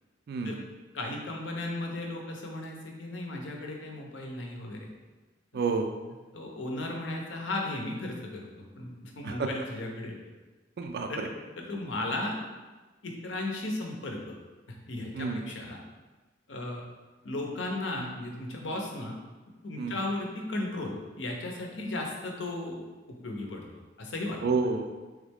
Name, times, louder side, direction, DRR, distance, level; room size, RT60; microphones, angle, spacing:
voice 1, 0.9-4.9 6.3-10.2 11.1-11.3 11.6-12.4 13.0-14.3 14.7-15.8 16.5-16.8 17.2-19.2 19.6-23.7 24.0-24.4, left 2 dB, 80° left, 1 dB, 0.7 m, -35 dB
voice 2, 5.5-5.9 9.2-9.5 10.8-11.3 15.1-15.4 19.8-20.0 24.4-24.9, right 4 dB, 55° right, 5 dB, 0.4 m, -29 dB
3.6 x 3.1 x 3.5 m, 1.2 s
head